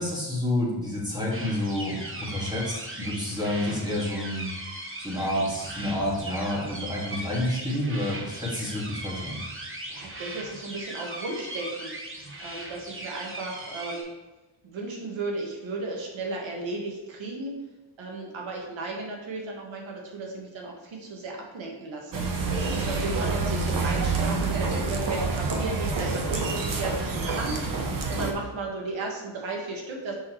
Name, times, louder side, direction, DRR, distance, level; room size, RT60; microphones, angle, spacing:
voice 1, 0.0-4.5 5.0-9.4, left 1 dB, 10° right, -5 dB, 2.0 m, -29 dB
sound 1, 1.3-14.0, right 1 dB, 25° right, 1.2 m, -39 dB
voice 2, 9.9-11.9 12.4-14.1 14.6-17.5 18.0-22.2 22.6-30.1, right 3 dB, 70° right, 0 dB, 1.6 m, -35 dB
sound 2, 22.1-28.3, right 4 dB, 45° right, 0.9 m, -27 dB
6.2 x 5.7 x 3.1 m, 1.2 s
wide cardioid pair, 130°, 48 cm